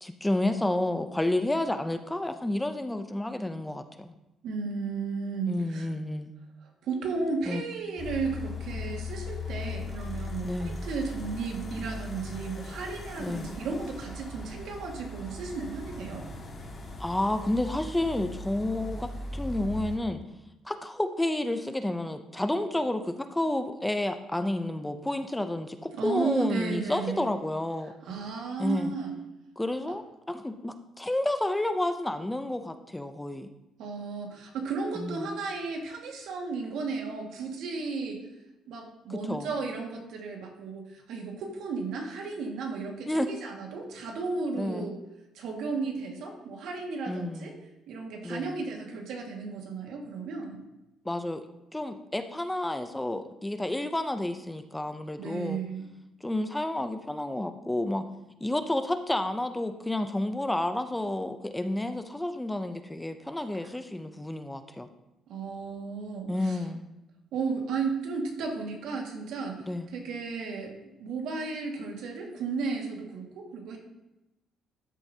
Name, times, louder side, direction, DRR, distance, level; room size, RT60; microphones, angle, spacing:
voice 1, 0.0-4.1 5.5-6.3 7.5-7.6 10.4-10.8 13.2-13.6 17.0-20.2 20.6-27.9 28.6-28.9 29.6-33.5 35.0-35.2 39.1-39.5 43.1-43.3 44.6-44.9 47.1-47.5 48.2-48.5 51.1-51.4 51.7-55.6 56.2-58.0 58.4-64.9 66.3-66.9 69.7-69.9, left 1 dB, 10° left, 8 dB, 0.5 m, -30 dB
voice 2, 4.4-5.9 6.8-16.2 26.0-27.3 28.0-29.2 33.8-38.2 38.7-45.0 45.3-47.5 47.9-50.6 55.2-55.9 65.3-66.6 67.3-70.7 71.0-73.8, right 4 dB, 75° right, 1 dB, 1.8 m, -34 dB
sound 1, 8.0-20.0, left 2 dB, 30° left, 1.7 m, -39 dB
13.0 x 6.9 x 2.8 m, 0.93 s
cardioid pair, 130°, 0 cm